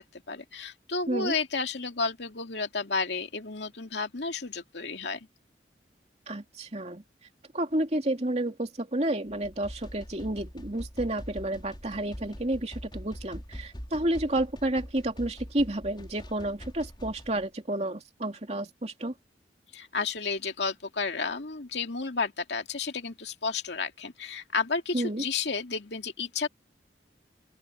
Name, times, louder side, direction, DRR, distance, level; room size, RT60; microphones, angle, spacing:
voice 1, 0.0-5.3 19.7-26.5, left 4 dB, 70° left, 2.4 m, -32 dB
voice 2, 6.3-7.0 7.5-19.1 24.9-25.2, right 1 dB, 35° right, 2.7 m, -30 dB
sound 1, 9.3-17.4, equal, 25° left, 4.9 m, -43 dB
open air
head